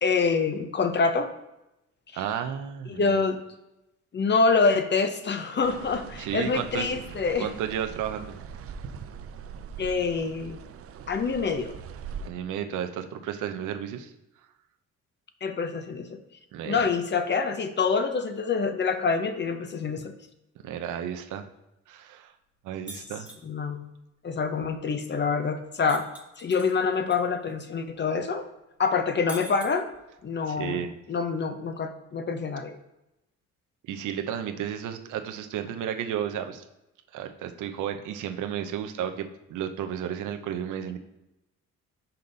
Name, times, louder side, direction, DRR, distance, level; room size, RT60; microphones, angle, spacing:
voice 1, 0.0-1.3 2.1-2.2 2.9-3.4 4.1-7.5 9.8-10.6 11.1-11.7 15.4-16.2 16.6-20.1 23.4-23.9 24.2-26.1 26.4-28.5 28.8-29.9 30.2-32.8, left 4 dB, 35° left, 9 dB, 0.7 m, -26 dB
voice 2, 2.1-3.2 6.2-7.0 7.4-8.4 12.2-14.1 16.5-16.9 20.6-21.5 21.9-22.3 22.6-23.3 30.5-31.0 33.9-36.6 37.1-41.0, right 9 dB, 80° right, 7 dB, 0.7 m, -33 dB
sound 1, 5.6-12.3, right 6 dB, 50° right, 0.5 m, -42 dB
sound 2, 22.9-23.4 25.9-27.2 27.5-27.6 29.3-30.2, right 2 dB, 5° right, 1.2 m, -43 dB
5.7 x 5.3 x 3.9 m, 0.92 s
cardioid pair, 90°, 30 cm